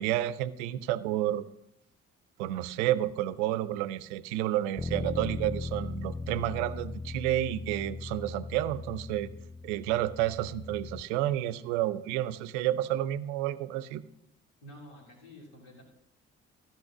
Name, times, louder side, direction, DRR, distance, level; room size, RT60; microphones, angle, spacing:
voice 1, 0.0-1.5 2.4-9.3 9.6-14.0, right 13 dB, 75° right, 17 dB, 0.6 m, -30 dB
Bass guitar, 4.8-11.0, left 3 dB, 5° left, 0.4 m, -38 dB
voice 2, 14.6-15.8, equal, 75° left, -2 dB, 3.4 m, -50 dB
14.5 x 5.2 x 6.0 m, 0.78 s
figure-of-eight pair, 40°, 35 cm